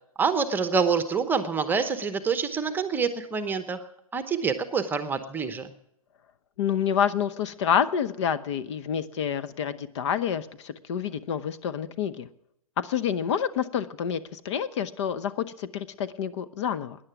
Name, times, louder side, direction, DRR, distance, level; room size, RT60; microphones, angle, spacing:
voice 1, 0.2-3.8 4.1-5.7, right 5 dB, 10° right, 10 dB, 0.9 m, -26 dB
voice 2, 6.6-12.3 12.8-17.0, left 8 dB, 50° left, 13 dB, 0.8 m, -28 dB
16.5 x 10.5 x 6.0 m, 0.77 s
hypercardioid pair, 130°, 19 cm